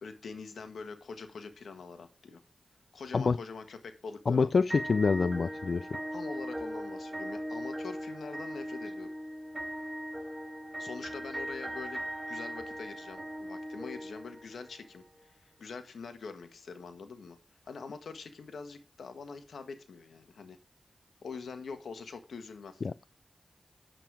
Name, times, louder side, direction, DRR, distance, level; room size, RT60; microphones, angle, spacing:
voice 1, 0.0-2.4 2.9-4.8 6.1-9.1 10.8-17.4 17.7-20.6 21.2-22.8, left 4 dB, 90° left, 1.5 m, -44 dB
voice 2, 4.3-5.9 22.8-23.0, left 4 dB, 65° left, 0.4 m, -26 dB
sound 1, 4.7-14.7, equal, 15° right, 4.3 m, -39 dB
9.0 x 7.7 x 4.8 m
cardioid pair, 50°, 0 cm